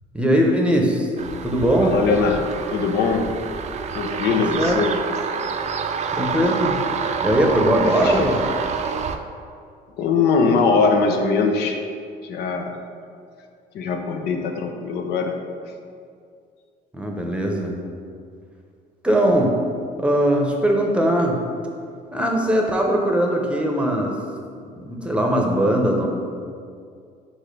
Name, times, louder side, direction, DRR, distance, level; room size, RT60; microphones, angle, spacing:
voice 1, 0.1-1.1 1.4-2.0 4.3-4.8 6.1-6.8 7.2-8.5 16.9-17.8 19.0-19.5 20.0-21.4 22.1-24.1 24.7-26.1, right 1 dB, 5° right, 0 dB, 0.8 m, -20 dB
sound 1, 1.2-9.2, right 6 dB, 40° right, 0.4 m, -27 dB
voice 2, 1.8-3.3 3.9-5.0 7.8-8.3 10.0-11.8 12.2-12.7 13.7-15.4, left 4 dB, 75° left, 4 dB, 0.7 m, -21 dB
4.8 x 4.3 x 5.3 m, 2.3 s
cardioid pair, 110°, 17 cm